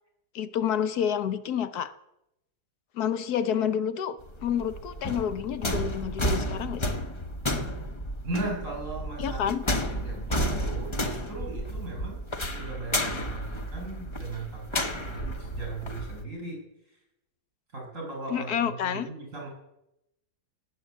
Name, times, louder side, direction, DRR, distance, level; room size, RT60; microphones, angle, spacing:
voice 1, 0.3-1.9 2.9-6.9 9.2-9.6 18.3-19.1, left 8 dB, 75° left, 12 dB, 1.3 m, -29 dB
sound 1, 4.2-16.2, equal, 20° left, 0.9 m, -32 dB
voice 2, 8.2-9.5 9.9-16.6 17.7-19.5, right 3 dB, 50° right, 0 dB, 6.8 m, -37 dB
18.0 x 8.9 x 8.1 m, 0.85 s
omnidirectional pair, 1.7 m